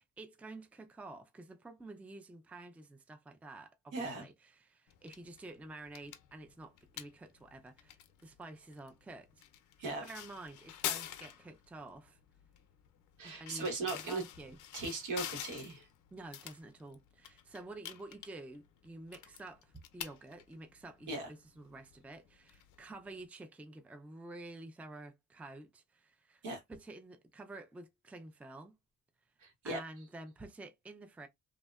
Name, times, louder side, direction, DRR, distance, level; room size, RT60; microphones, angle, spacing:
voice 1, 0.0-9.3 10.0-12.2 13.2-14.6 16.1-26.4 26.7-28.8 29.6-31.3, right 2 dB, 5° right, 0.3 m, -50 dB
voice 2, 3.9-4.2 9.8-10.0 13.2-14.2 14.7-15.9 21.1-21.3 26.4-26.6 29.4-29.8, right 3 dB, 85° right, 1.2 m, -38 dB
sound 1, 4.9-23.2, left 11 dB, 80° left, 0.5 m, -48 dB
2.7 x 2.1 x 2.2 m
cardioid pair, 90°, 30 cm